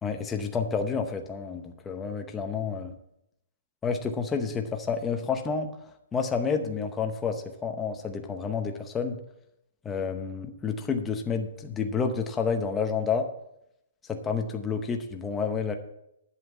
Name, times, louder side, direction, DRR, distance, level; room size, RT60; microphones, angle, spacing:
voice 1, 0.0-2.9 3.8-5.7 6.1-9.2 9.8-13.3 14.1-15.7, left 5 dB, 10° left, 4 dB, 0.7 m, -29 dB
11.0 x 5.7 x 8.0 m, 0.80 s
hypercardioid pair, 180°, 0 cm